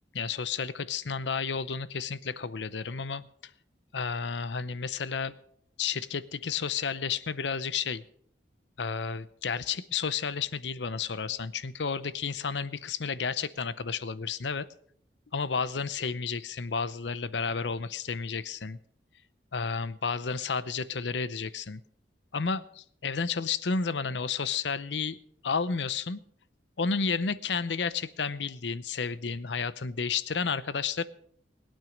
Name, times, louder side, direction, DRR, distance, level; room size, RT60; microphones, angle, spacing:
voice 1, 0.1-3.3 3.9-5.3 5.8-8.0 8.8-14.7 15.3-18.8 19.5-21.8 22.3-25.2 25.4-26.2 26.8-31.0, left 5 dB, 80° left, 16 dB, 0.7 m, -31 dB
20.5 x 9.0 x 5.2 m, 0.66 s
head